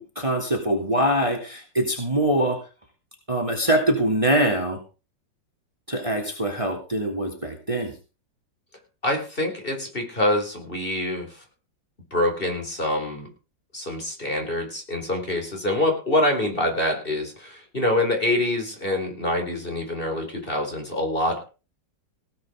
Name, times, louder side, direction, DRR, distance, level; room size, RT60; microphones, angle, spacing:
voice 1, 0.0-2.6 3.3-4.8 5.9-7.9, right 1 dB, 15° right, 2 dB, 3.0 m, -23 dB
voice 2, 9.0-11.4 12.1-13.3 13.7-21.4, left 1 dB, 30° left, 2 dB, 4.6 m, -25 dB
18.0 x 9.2 x 5.2 m, 0.34 s
omnidirectional pair, 2.0 m